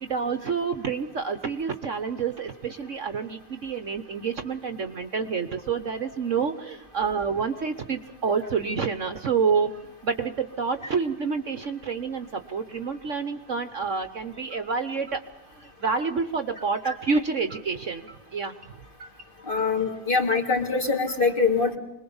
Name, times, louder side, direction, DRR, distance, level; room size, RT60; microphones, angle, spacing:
voice 1, 0.0-9.7 10.0-15.2 15.5-18.7 19.0-19.1 19.6-19.7, right 5 dB, 50° right, 9 dB, 1.3 m, -28 dB
voice 2, 19.5-21.8, left 4 dB, 30° left, 2 dB, 2.8 m, -24 dB
26.0 x 21.0 x 7.1 m, 0.86 s
omnidirectional pair, 1.8 m